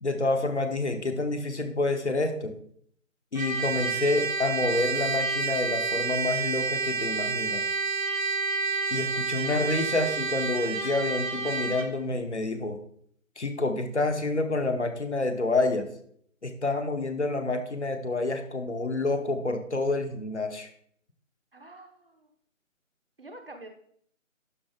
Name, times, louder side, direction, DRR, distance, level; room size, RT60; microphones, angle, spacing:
voice 1, 0.0-2.6 3.3-7.6 8.9-12.8 13.4-15.9 16.4-20.7, left 2 dB, 55° left, 7 dB, 1.0 m, -28 dB
Trumpet, 3.4-11.9, right 4 dB, 75° right, 1.8 m, -29 dB
voice 2, 21.5-22.3 23.2-23.7, right 2 dB, 45° right, 5 dB, 1.0 m, -46 dB
11.0 x 4.4 x 3.6 m, 0.65 s
figure-of-eight pair, 160°, 40 cm